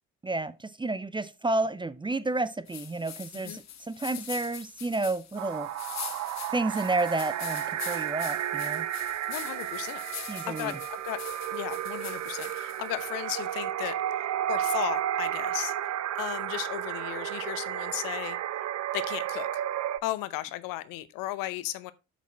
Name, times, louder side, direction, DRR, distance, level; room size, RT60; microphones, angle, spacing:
voice 1, 0.2-5.7 6.5-8.9 10.3-10.8, right 2 dB, 15° right, 0.7 m, -31 dB
sound 1, 2.7-13.1, left 9 dB, 45° left, 1.4 m, -43 dB
sound 2, 5.4-20.0, right 11 dB, 45° right, 0.8 m, -32 dB
voice 2, 9.3-10.0 10.5-11.2 11.5-13.9 14.5-15.7 16.2-18.4 18.9-19.6 20.0-21.9, left 16 dB, 65° left, 0.8 m, -35 dB
8.2 x 6.1 x 4.2 m
hypercardioid pair, 55°, 36 cm